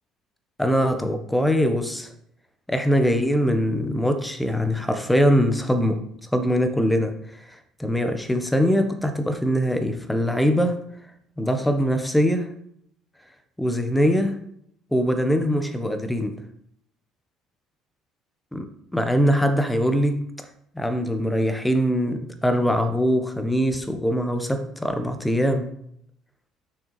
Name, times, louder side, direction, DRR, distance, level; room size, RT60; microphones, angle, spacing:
voice 1, 0.6-2.1 2.7-6.0 6.3-10.8 11.4-12.5 13.6-14.4 14.9-16.3 18.5-18.6 18.9-20.2 20.7-25.7, equal, 5° left, 7 dB, 1.2 m, -22 dB
6.8 x 6.3 x 3.3 m, 0.70 s
figure-of-eight pair, 55°, 0 cm